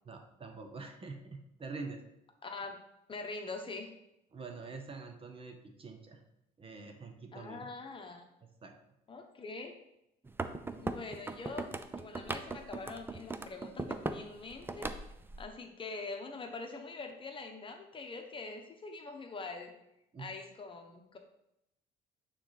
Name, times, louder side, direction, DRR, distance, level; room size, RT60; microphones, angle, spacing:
voice 1, 0.1-2.0 4.3-6.2 6.6-7.7 8.6-8.7 10.6-10.8 20.1-20.3, right 4 dB, 35° right, 4 dB, 0.9 m, -45 dB
voice 2, 2.4-2.8 3.1-3.9 7.3-8.3 9.1-9.7 10.8-14.9 15.4-19.7 20.2-21.2, left 3 dB, 30° left, 3 dB, 0.9 m, -44 dB
sound 1, 10.3-14.3 14.5-15.4, right 3 dB, 15° right, 0.4 m, -39 dB
8.9 x 3.3 x 4.1 m, 0.84 s
cardioid pair, 110°, 17 cm